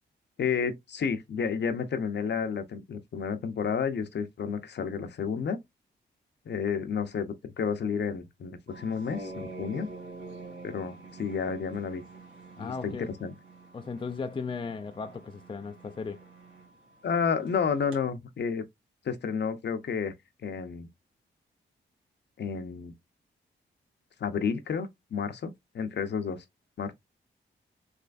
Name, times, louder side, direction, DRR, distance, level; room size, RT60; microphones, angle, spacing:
voice 1, 0.4-5.6 6.5-9.9 10.6-12.0 12.6-13.3 17.0-18.6 19.0-20.1 20.4-20.9 22.4-22.9 24.2-26.4 26.8-26.9, left 6 dB, 60° left, 0.7 m, -31 dB
sound 1, 8.7-18.0, right 3 dB, 75° right, 1.5 m, -46 dB
voice 2, 12.6-13.1 13.7-16.2, left 4 dB, 25° left, 0.4 m, -36 dB
3.3 x 3.1 x 2.5 m
cardioid pair, 60°, 20 cm